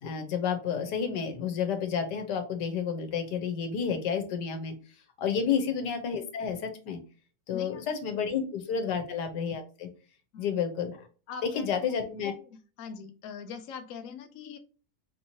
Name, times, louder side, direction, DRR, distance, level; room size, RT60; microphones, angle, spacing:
voice 1, 0.0-4.7 5.2-7.0 7.5-9.9 10.4-11.1 11.4-12.3, left 7 dB, 85° left, 1.4 m, -30 dB
voice 2, 7.5-7.8 8.9-9.0 10.3-10.6 11.3-11.9 12.8-14.6, left 6 dB, 65° left, 0.9 m, -42 dB
5.3 x 3.0 x 2.8 m
omnidirectional pair, 1.8 m